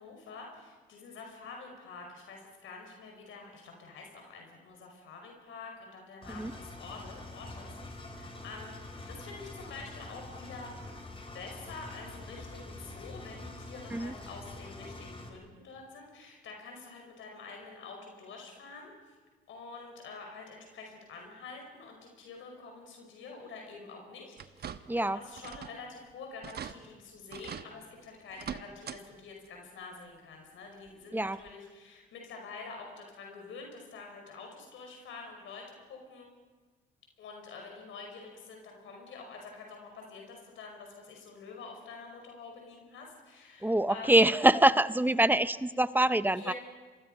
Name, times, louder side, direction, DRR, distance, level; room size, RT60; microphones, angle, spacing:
voice 1, 0.0-10.7 11.3-19.1 19.5-36.3 37.2-44.3 46.3-46.5, left 4 dB, 80° left, 2 dB, 5.3 m, -47 dB
Engine, 6.2-15.3, left 2 dB, 25° left, 4.1 m, -45 dB
sound 1, 24.4-25.1 25.4-25.8 26.1-26.2 26.4-26.7 27.3-27.7 28.3-29.0 29.4-29.5 30.9-31.0 31.5-31.6, right 8 dB, 55° right, 1.1 m, -42 dB
voice 2, 24.9-25.2 31.1-31.4 43.6-46.5, right 1 dB, 10° right, 14 dB, 0.7 m, -25 dB
28.5 x 24.0 x 5.4 m, 1.4 s
cardioid pair, 90°, 20 cm